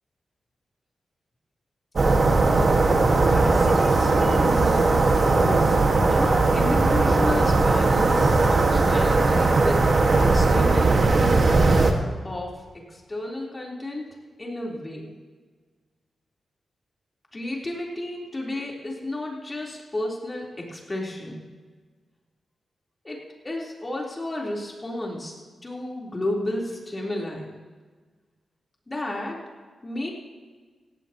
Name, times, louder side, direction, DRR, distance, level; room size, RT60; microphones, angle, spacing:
sound 1, 2.0-11.9, right 3 dB, 50° right, 1.8 m, -19 dB
voice 1, 3.3-5.1 5.4-11.5 12.2-14.1 14.4-15.1 17.3-21.4 23.0-25.4 25.6-27.5 28.9-29.4 29.8-30.1, left 1 dB, 25° left, -2 dB, 3.9 m, -32 dB
17.0 x 16.5 x 3.0 m, 1.5 s
wide cardioid pair, 100°, 0 cm